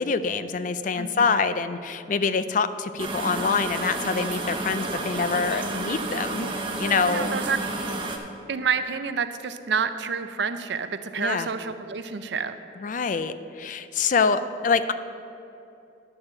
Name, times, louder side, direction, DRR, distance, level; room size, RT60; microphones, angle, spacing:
voice 1, 0.0-6.5 6.8-7.3 11.2-11.5 12.8-14.9, left 5 dB, 45° left, 12 dB, 0.3 m, -25 dB
voice 2, 1.0-1.3 7.1-7.6 8.5-12.5, right 6 dB, 65° right, 11 dB, 0.5 m, -28 dB
sound 1, 3.0-8.2, right 2 dB, 25° right, 0.8 m, -30 dB
11.0 x 4.8 x 7.4 m, 2.8 s
head